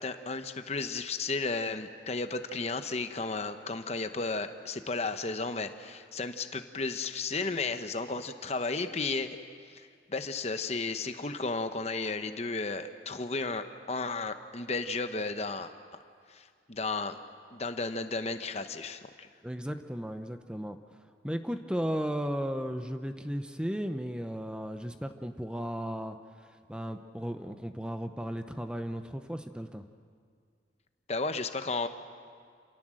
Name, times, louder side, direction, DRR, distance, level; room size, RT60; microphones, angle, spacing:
voice 1, 0.0-9.3 9.7-15.7 16.3-17.2 17.5-19.3 31.1-31.9, left 3 dB, 35° left, 8 dB, 1.0 m, -34 dB
voice 2, 19.4-20.8 21.2-29.9, equal, 5° right, 7 dB, 0.7 m, -35 dB
27.5 x 17.5 x 7.7 m, 2.1 s
head